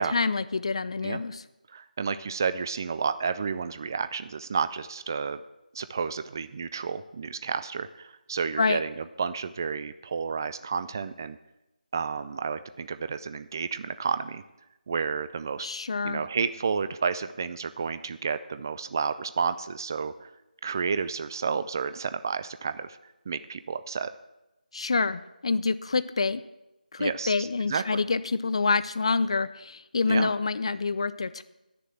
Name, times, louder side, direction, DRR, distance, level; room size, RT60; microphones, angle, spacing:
voice 1, 0.0-1.4 8.6-8.8 15.6-16.2 24.7-26.4 26.9-31.4, left 4 dB, 40° left, 15 dB, 0.5 m, -27 dB
voice 2, 1.7-5.4 5.7-11.4 11.9-14.4 14.9-15.7 16.0-20.3 20.6-23.0 23.3-24.1 27.0-28.0 30.1-30.3, right 5 dB, 25° right, 12 dB, 0.4 m, -31 dB
11.0 x 6.8 x 7.6 m, 0.95 s
figure-of-eight pair, 165°, 5 cm